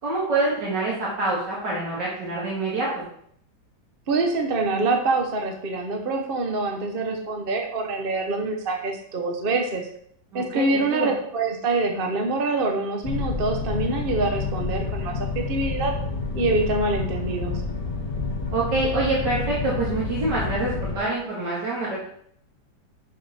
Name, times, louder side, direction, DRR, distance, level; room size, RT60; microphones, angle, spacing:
voice 1, 0.0-3.1 10.3-11.1 18.5-22.0, right 2 dB, 80° right, -6 dB, 2.4 m, -26 dB
voice 2, 4.1-9.9 10.3-15.9 16.3-17.6, right 3 dB, 40° right, 2 dB, 1.0 m, -25 dB
sound 1, 13.0-21.0, left 3 dB, 15° left, 1.3 m, -29 dB
6.5 x 6.5 x 4.2 m, 0.66 s
omnidirectional pair, 1.9 m